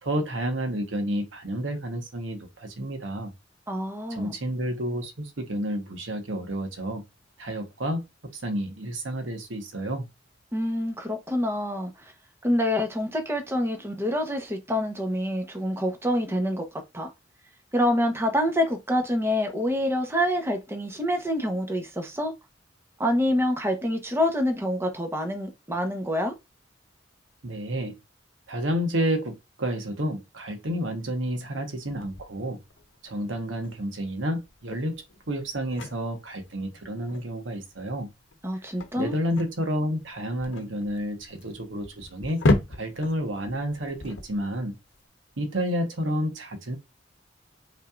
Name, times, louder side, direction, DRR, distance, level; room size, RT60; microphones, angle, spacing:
voice 1, 0.0-3.3 4.1-7.0 7.4-8.0 8.3-10.1 27.4-28.0 28.5-32.6 33.0-38.1 39.0-42.4 42.8-44.8 45.4-46.8, equal, 80° right, 1.2 m, -30 dB
voice 2, 3.7-4.3 10.5-12.1 12.4-16.6 16.9-17.1 17.7-22.3 23.0-26.3 38.4-39.2, left 1 dB, 15° right, 1.0 m, -26 dB
sound 1, 31.9-45.0, left 2 dB, 75° left, 0.8 m, -33 dB
5.5 x 3.2 x 2.5 m
head